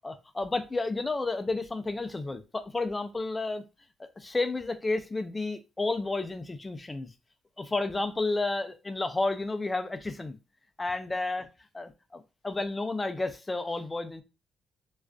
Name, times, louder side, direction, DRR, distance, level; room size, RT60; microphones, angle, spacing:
voice 1, 0.0-3.6 4.2-7.1 7.6-10.4 10.8-11.5 11.7-14.2, left 2 dB, 20° left, 0.4 m, -31 dB
2.4 x 2.3 x 2.2 m
cardioid pair, 90°, 0 cm